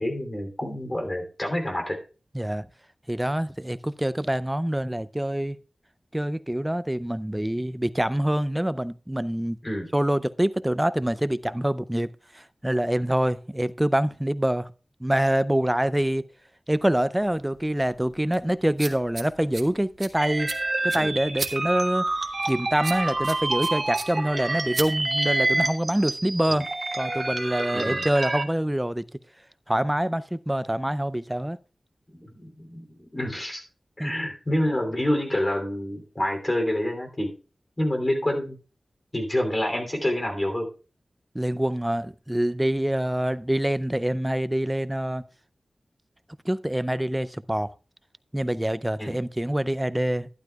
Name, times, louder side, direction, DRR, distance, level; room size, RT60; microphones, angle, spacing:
voice 1, 0.0-2.0 9.6-9.9 21.0-21.2 26.5-26.6 27.7-28.0 32.1-33.6 34.0-37.3 37.8-38.6 39.1-40.7 49.0-49.2, left 1 dB, 30° left, 3.0 m, -27 dB
voice 2, 2.3-2.7 3.1-5.6 6.1-9.6 9.9-12.1 12.3-14.7 15.0-16.2 16.7-20.5 20.8-22.1 22.5-26.7 26.9-29.0 29.7-31.6 34.0-34.1 41.3-45.2 46.5-47.7 48.3-50.3, right 1 dB, 10° right, 0.5 m, -25 dB
sound 1, 17.2-25.6, right 3 dB, 70° right, 1.1 m, -39 dB
sound 2, 20.2-28.4, right 2 dB, 40° right, 1.2 m, -28 dB
12.0 x 11.5 x 2.3 m
wide cardioid pair, 70°, 0 cm